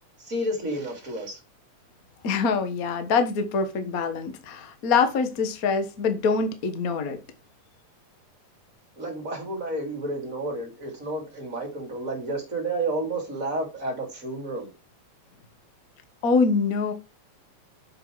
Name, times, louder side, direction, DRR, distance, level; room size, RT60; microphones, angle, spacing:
voice 1, 0.2-1.4 9.0-14.7, right 2 dB, 30° right, 3.0 m, -31 dB
voice 2, 2.2-7.2 16.2-16.9, left 5 dB, 55° left, 0.9 m, -24 dB
7.3 x 6.4 x 4.6 m
omnidirectional pair, 3.4 m